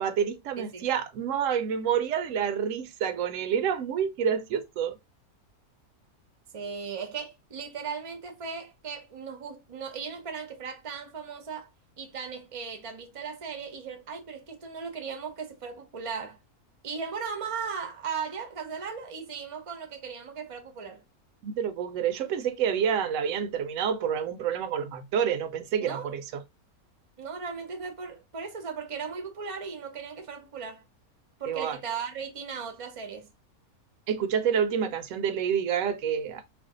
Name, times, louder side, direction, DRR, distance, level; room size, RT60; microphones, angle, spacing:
voice 1, 0.0-5.0 21.4-26.2 31.5-31.8 34.1-36.4, right 8 dB, 70° right, 0.9 m, -28 dB
voice 2, 0.6-0.9 6.5-11.7 12.0-16.4 16.8-21.0 25.8-26.1 27.2-30.8 31.4-33.3, right 6 dB, 35° right, 0.5 m, -37 dB
2.5 x 2.3 x 3.6 m
omnidirectional pair, 1.5 m